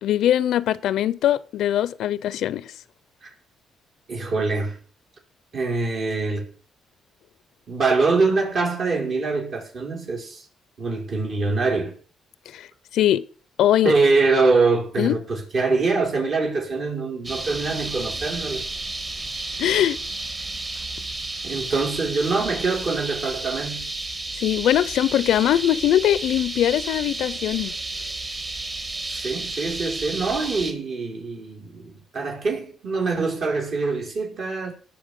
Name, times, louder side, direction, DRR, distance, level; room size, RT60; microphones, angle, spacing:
voice 1, 0.0-2.7 12.5-12.7 12.9-13.2 13.6-13.9 15.0-15.2 19.6-20.0 24.4-27.8, left 12 dB, 80° left, 0.5 m, -21 dB
voice 2, 4.1-4.8 5.5-6.5 7.7-10.4 10.8-11.9 13.8-18.6 21.4-23.9 29.1-34.7, right 3 dB, 55° right, 5.2 m, -24 dB
sound 1, 17.2-30.7, right 2 dB, 35° right, 2.2 m, -32 dB
18.5 x 6.9 x 5.3 m
cardioid pair, 90°, 0 cm